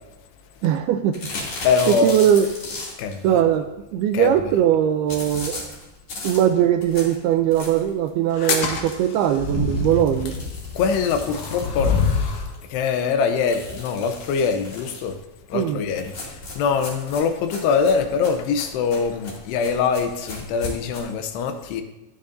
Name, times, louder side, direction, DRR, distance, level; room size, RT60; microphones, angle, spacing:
voice 1, 0.6-1.2 1.9-2.5 3.2-3.7 3.9-5.7 6.2-10.3 15.5-15.8, right 10 dB, 80° right, 7 dB, 2.3 m, -20 dB
sound 1, 1.1-3.2 5.1-8.0 8.5-8.6 8.9-9.0 9.3-9.4 10.0-12.6 13.4-15.1 16.0-21.0, left 2 dB, 45° left, 3.6 m, -36 dB
voice 2, 1.6-2.1 3.0-3.2 4.1-4.3 10.8-12.1 12.7-15.2 15.5-21.8, left 5 dB, 80° left, 7 dB, 2.8 m, -23 dB
sound 2, 8.3-12.5, left 5 dB, 60° left, 2.2 m, -26 dB
16.5 x 9.9 x 2.6 m, 1.0 s
omnidirectional pair, 5.0 m